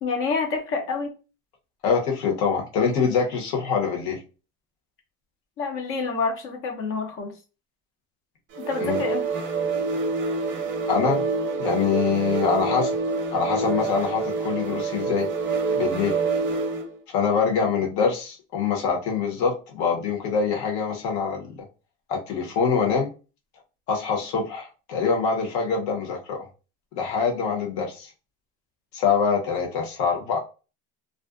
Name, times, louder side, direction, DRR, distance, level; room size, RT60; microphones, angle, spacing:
voice 1, 0.0-1.1 5.6-7.3 8.6-9.2, left 4 dB, 40° left, 3 dB, 0.6 m, -28 dB
voice 2, 1.8-4.2 8.8-9.0 10.9-11.2 11.6-12.9 13.3-15.3 15.7-16.2 17.1-21.6 22.1-23.1 23.9-26.5 26.9-28.1 28.9-30.4, left 6 dB, 60° left, 0 dB, 1.0 m, -24 dB
sound 1, 8.5-16.9, right 4 dB, 40° right, 0.5 m, -27 dB
2.5 x 2.1 x 2.3 m, 0.32 s
cardioid pair, 165°, 31 cm